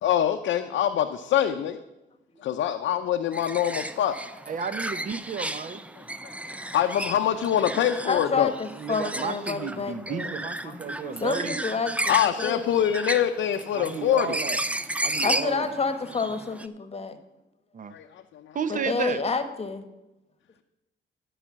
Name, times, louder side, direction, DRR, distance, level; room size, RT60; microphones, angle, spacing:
voice 1, 0.0-1.8 2.4-4.2 6.2-8.5 12.1-14.4 17.9-18.6, left 10 dB, 70° left, 4 dB, 0.7 m, -25 dB
sound 1, 3.3-16.7, right 1 dB, 5° right, 0.5 m, -33 dB
voice 2, 4.5-5.8 8.7-11.6 13.7-14.6 15.0-15.7 17.7-17.9 18.5-19.2, right 6 dB, 40° right, 13 dB, 0.8 m, -32 dB
voice 3, 8.1-10.3 10.6-12.7 15.2-17.2 18.7-19.8, left 4 dB, 30° left, 9 dB, 1.2 m, -29 dB
12.0 x 5.0 x 7.3 m, 0.97 s
cardioid pair, 90°, 20 cm